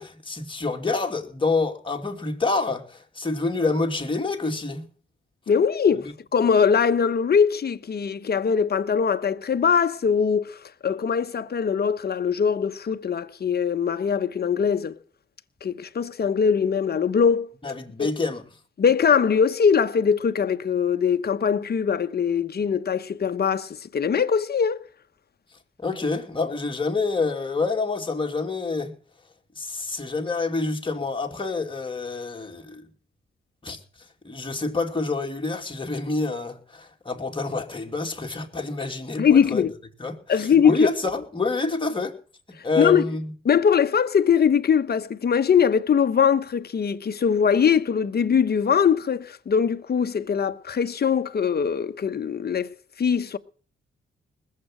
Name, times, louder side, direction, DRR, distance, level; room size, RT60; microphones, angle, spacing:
voice 1, 0.0-4.9 17.6-18.4 25.8-28.9 29.6-32.9 33.6-33.8 34.2-39.6 40.0-42.1 42.6-43.3, left 3 dB, 25° left, 2.6 m, -27 dB
voice 2, 5.5-10.6 10.8-14.9 15.6-17.5 18.0-18.1 18.8-24.8 39.2-39.7 40.3-40.9 42.7-43.0 43.4-52.7 53.0-53.4, left 7 dB, 50° left, 1.0 m, -21 dB
20.0 x 7.6 x 7.7 m
cardioid pair, 85°, 21 cm